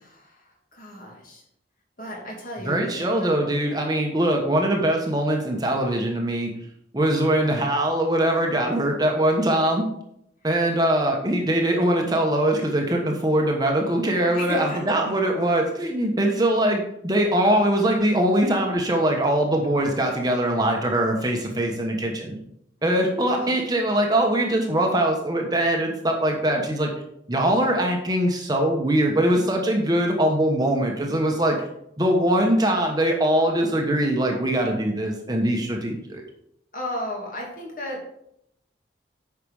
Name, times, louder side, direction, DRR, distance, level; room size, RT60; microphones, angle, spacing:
voice 1, 0.0-1.4 2.0-3.3 14.3-15.4 23.3-23.6 36.7-38.2, left 1 dB, 45° left, -1 dB, 2.6 m, -34 dB
voice 2, 2.6-6.5 6.9-9.9 10.4-22.4 22.8-26.9 27.3-31.6 32.0-36.2, right 1 dB, 20° right, 1 dB, 1.1 m, -22 dB
8.9 x 5.9 x 4.8 m, 0.75 s
head